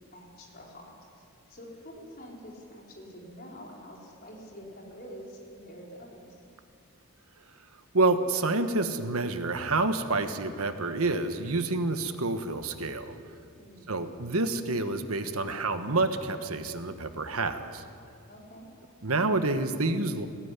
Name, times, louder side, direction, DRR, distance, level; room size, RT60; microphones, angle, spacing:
voice 1, 0.0-6.4 13.5-13.9 18.3-18.7, equal, 40° left, -2 dB, 4.5 m, -47 dB
voice 2, 7.9-13.2 13.9-17.8 19.0-20.3, right 2 dB, 75° right, 8 dB, 1.4 m, -28 dB
20.5 x 17.0 x 9.8 m, 2.4 s
head